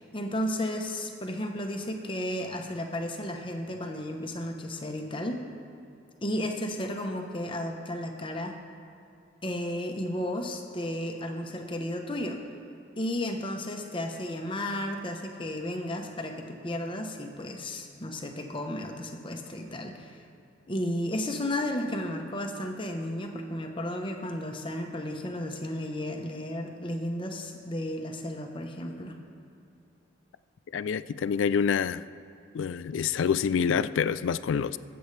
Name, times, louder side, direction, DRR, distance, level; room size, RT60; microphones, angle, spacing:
voice 1, 0.0-5.4 6.2-8.6 9.4-12.4 13.0-20.2 20.7-29.2, left 1 dB, 25° left, 3 dB, 0.9 m, -33 dB
voice 2, 30.7-32.0 32.5-34.8, left 7 dB, 70° left, 15 dB, 0.3 m, -27 dB
22.0 x 7.9 x 3.3 m, 2.7 s
head